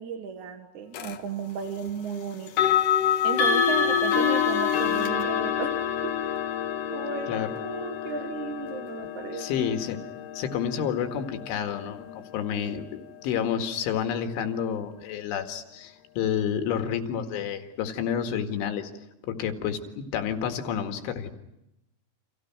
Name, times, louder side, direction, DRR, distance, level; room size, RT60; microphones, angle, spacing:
voice 1, 0.0-2.5 3.2-6.1 6.9-9.5, right 6 dB, 55° right, 6 dB, 2.4 m, -34 dB
sound 1, 0.9-1.2 2.5-13.3, left 8 dB, 60° left, 2.4 m, -27 dB
voice 2, 9.3-10.0 10.3-12.9 13.2-18.9 19.2-21.3, left 8 dB, 80° left, 6 dB, 4.4 m, -29 dB
30.0 x 28.0 x 6.1 m, 0.86 s
omnidirectional pair, 5.5 m